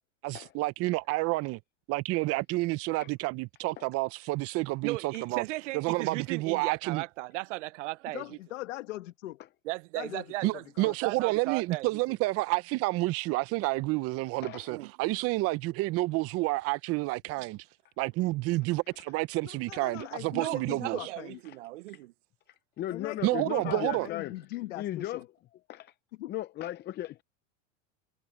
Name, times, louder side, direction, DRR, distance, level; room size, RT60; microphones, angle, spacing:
voice 1, 0.2-1.6 1.9-5.4 5.7-7.0 10.4-17.6 18.0-21.1 23.2-24.1, right 21 dB, 40° right, 0.6 m, -29 dB
voice 2, 4.8-8.2 9.7-11.9 14.7-14.9 17.4-17.5 20.3-22.1, right 19 dB, 85° right, 0.7 m, -36 dB
voice 3, 8.1-9.4 9.9-11.0 19.4-21.4 22.9-25.2 26.1-26.3, left 17 dB, 90° left, 1.5 m, -41 dB
voice 4, 14.4-14.7 20.0-20.1 21.9-22.0 22.5-24.4 24.8-25.2 25.7-25.9 26.3-27.2, left 13 dB, 30° left, 0.6 m, -37 dB
supercardioid pair, 130°, 36 cm